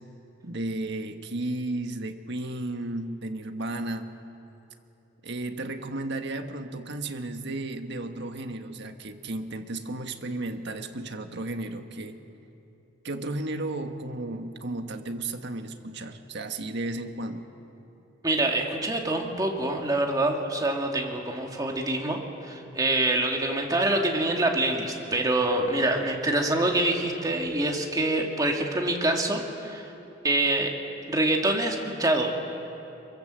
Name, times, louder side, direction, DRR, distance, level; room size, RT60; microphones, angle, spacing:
voice 1, 0.4-4.1 5.2-12.2 13.0-17.4, right 2 dB, 60° right, 6 dB, 1.5 m, -33 dB
voice 2, 18.2-22.2 22.4-29.9 30.2-30.7 31.1-32.3, right 2 dB, 20° right, 1 dB, 2.4 m, -25 dB
26.5 x 23.5 x 7.8 m, 3.0 s
head